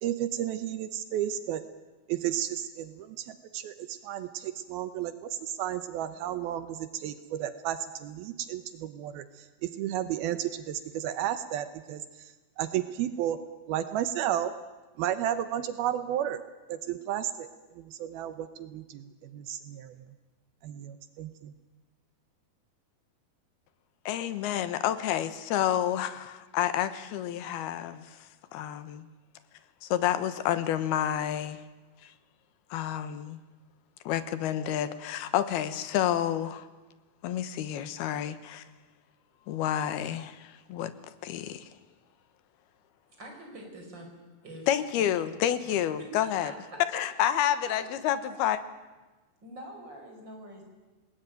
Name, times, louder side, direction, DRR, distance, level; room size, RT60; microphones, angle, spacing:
voice 1, 0.0-1.6 2.1-12.0 12.6-13.4 13.7-14.5 15.0-16.4 16.7-17.5 17.8-20.0 20.6-21.5, right 11 dB, 80° right, 11 dB, 2.8 m, -33 dB
voice 2, 24.1-28.0 28.5-29.1 29.8-31.6 32.7-33.4 34.1-36.6 37.2-38.6 39.5-40.4 40.7-40.9 41.2-41.6 44.7-46.5 46.9-48.6, left 11 dB, 85° left, 12 dB, 3.2 m, -29 dB
voice 3, 43.1-44.1 44.4-45.3 45.6-46.1 46.4-46.8 47.6-48.5 49.4-50.6, equal, 30° right, 2 dB, 6.0 m, -46 dB
28.0 x 19.5 x 9.2 m, 1.2 s
omnidirectional pair, 4.4 m